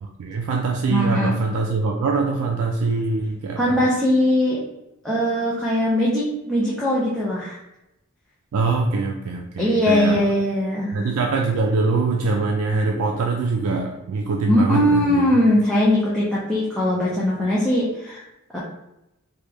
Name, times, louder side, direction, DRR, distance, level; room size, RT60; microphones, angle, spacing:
voice 1, 0.0-3.9 8.5-10.3 10.9-15.4, right 3 dB, 90° right, 2 dB, 0.3 m, -23 dB
voice 2, 0.9-1.3 3.6-4.6 5.0-7.6 9.6-11.0 14.5-18.2 18.5-18.6, left 1 dB, ahead, -7 dB, 0.5 m, -20 dB
3.0 x 2.2 x 3.3 m, 0.91 s
head